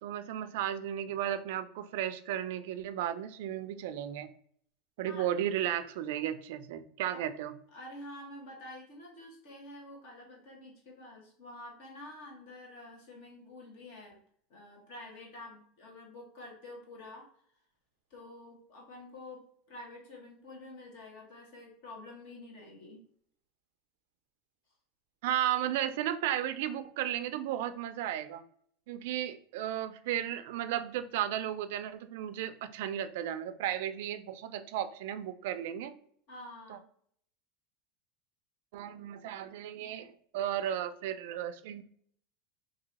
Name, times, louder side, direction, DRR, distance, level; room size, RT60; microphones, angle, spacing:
voice 1, 0.0-4.3 5.0-7.6 25.2-28.4 28.9-35.9 36.7-36.8 38.7-41.8, right 11 dB, 65° right, 11 dB, 0.3 m, -34 dB
voice 2, 7.7-14.2 14.5-17.3 18.1-23.1 36.3-36.8, left 1 dB, 60° left, 0 dB, 1.3 m, -48 dB
3.0 x 2.7 x 3.9 m, 0.63 s
supercardioid pair, 160°, 0 cm